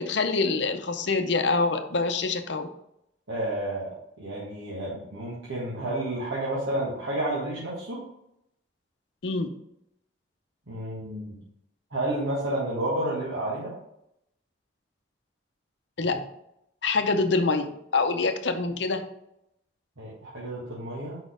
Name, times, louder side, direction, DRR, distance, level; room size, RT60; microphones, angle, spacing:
voice 1, 0.0-2.7 9.2-9.5 16.0-16.2 16.8-19.0, left 3 dB, 65° left, 8 dB, 0.6 m, -25 dB
voice 2, 3.3-8.1 10.7-11.4 11.9-13.7 20.0-21.2, right 1 dB, 85° right, -7 dB, 1.7 m, -31 dB
5.1 x 4.1 x 5.0 m, 0.80 s
head